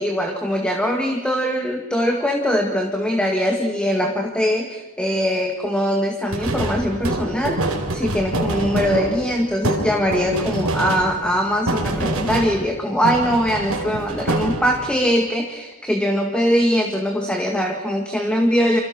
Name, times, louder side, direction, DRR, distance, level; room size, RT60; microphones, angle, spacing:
voice 1, 0.0-7.6 7.9-18.8, equal, 5° left, 2 dB, 2.0 m, -21 dB
sound 1, 6.3-12.8 13.0-14.9, right 1 dB, 90° right, 4.4 m, -25 dB
29.0 x 26.0 x 6.0 m, 1.2 s
head